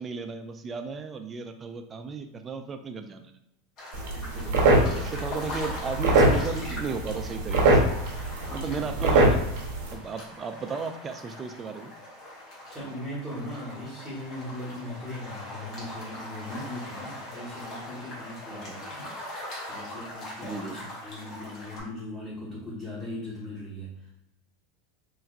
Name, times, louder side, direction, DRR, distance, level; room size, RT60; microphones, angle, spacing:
voice 1, 0.0-3.3 4.8-7.9 8.5-9.4 9.9-11.9 18.5-18.8 20.4-20.8, right 4 dB, 25° right, 7 dB, 0.3 m, -35 dB
sound 1, 3.8-21.8, left 1 dB, 40° left, 1.4 m, -41 dB
sound 2, 3.9-9.9, right 2 dB, 65° right, 0.8 m, -23 dB
voice 2, 4.1-4.6 8.7-9.1 12.7-19.1 19.7-24.1, left 1 dB, 10° left, -11 dB, 1.2 m, -39 dB
3.3 x 2.9 x 2.4 m, 0.81 s
supercardioid pair, 130°, 0 cm